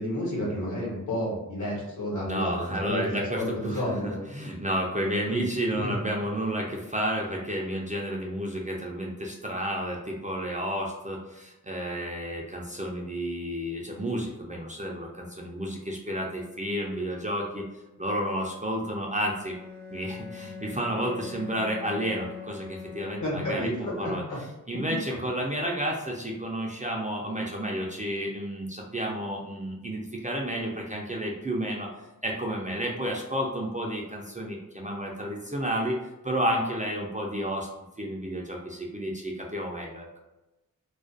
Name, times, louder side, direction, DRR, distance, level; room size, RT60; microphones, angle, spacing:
voice 1, 0.0-3.0 3.3-4.2 5.3-5.9 23.2-24.4 24.9-25.0, left 1 dB, 60° left, -4 dB, 1.1 m, -31 dB
voice 2, 2.2-17.6 18.0-19.6 19.9-24.2 24.7-31.9 32.2-36.0 36.2-37.7 38.0-40.1, equal, 25° right, -2 dB, 0.4 m, -31 dB
Bowed string instrument, 19.3-23.8, left 6 dB, 80° right, 0.5 m, -43 dB
2.4 x 2.2 x 2.4 m, 1.0 s
wide cardioid pair, 70°, 34 cm